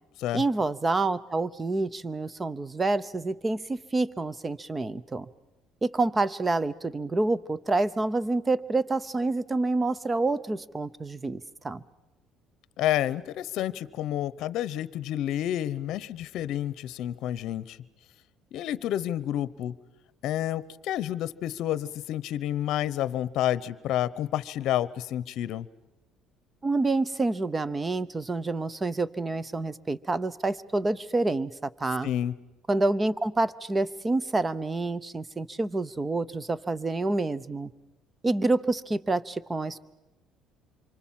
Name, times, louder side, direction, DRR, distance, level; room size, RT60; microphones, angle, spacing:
voice 1, 0.3-5.3 5.8-11.8 26.6-32.1 32.7-37.7 38.2-39.9, right 2 dB, 20° right, 19 dB, 0.8 m, -28 dB
voice 2, 12.8-17.8 18.5-19.7 20.2-25.7 32.0-32.3, left 12 dB, 65° left, 18 dB, 0.8 m, -29 dB
27.0 x 24.5 x 7.5 m, 1.1 s
cardioid pair, 120°, 0 cm